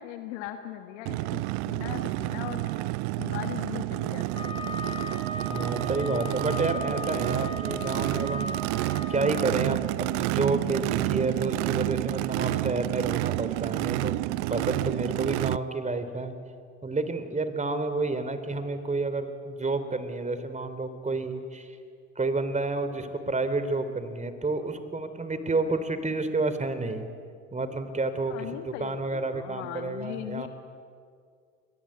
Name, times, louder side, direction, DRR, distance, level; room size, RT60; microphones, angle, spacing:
voice 1, 0.0-2.7 3.2-4.6 6.8-6.9 28.3-30.5, left 12 dB, 80° left, 6 dB, 1.6 m, -39 dB
Race car auto racing / Idling / Accelerating revving vroom, 1.1-15.6, right 21 dB, 75° right, 0.6 m, -29 dB
Wind instrument woodwind instrument, 4.3-9.5, left 2 dB, 15° left, 4.0 m, -37 dB
voice 2, 5.5-8.6 9.1-16.3 16.8-21.7 22.2-27.1 27.5-30.5, right 3 dB, 20° right, 11 dB, 3.4 m, -30 dB
28.5 x 21.5 x 8.8 m, 2.2 s
hypercardioid pair, 75°, 34 cm